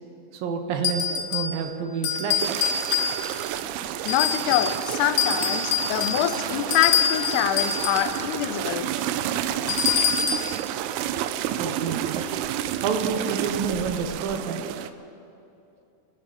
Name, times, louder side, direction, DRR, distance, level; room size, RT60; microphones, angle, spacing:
voice 1, 0.3-2.6 11.6-12.2 12.8-14.7, right 6 dB, 70° right, 5 dB, 2.6 m, -29 dB
sound 1, 0.8-1.6 2.0-3.5 4.1-4.8 5.2-8.1 9.7-10.5, left 7 dB, 65° left, 2.4 m, -25 dB
sound 2, 2.4-14.9, right 11 dB, 90° right, 2.6 m, -30 dB
voice 2, 4.0-8.9, left 11 dB, 90° left, 10 dB, 2.8 m, -25 dB
26.0 x 11.0 x 5.1 m, 2.7 s
omnidirectional pair, 4.5 m